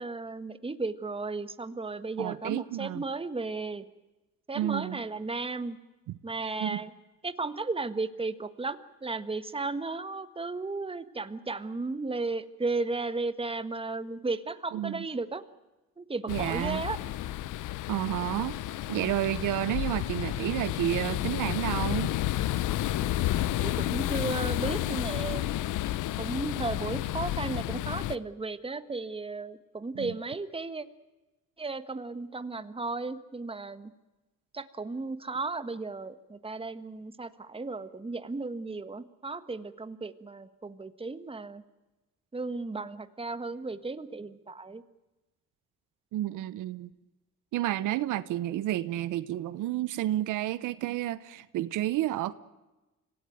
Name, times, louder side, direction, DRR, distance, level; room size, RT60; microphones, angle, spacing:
voice 1, 0.0-3.8 4.5-5.8 6.2-6.9 7.2-15.4 16.0-17.0 23.6-25.5 26.2-30.9 31.6-33.9 34.5-41.6 42.3-44.8, right 3 dB, 20° right, 12 dB, 1.5 m, -35 dB
voice 2, 2.2-3.0 4.5-5.0 6.6-6.8 14.7-15.1 16.3-16.8 17.9-18.6 18.9-22.1 29.9-30.1 46.1-46.9 47.5-52.3, right 14 dB, 85° right, 16 dB, 1.0 m, -30 dB
sound 1, 16.3-28.2, left 14 dB, 85° left, 0.8 m, -31 dB
26.0 x 17.5 x 9.3 m, 1.1 s
cardioid pair, 90°, 30 cm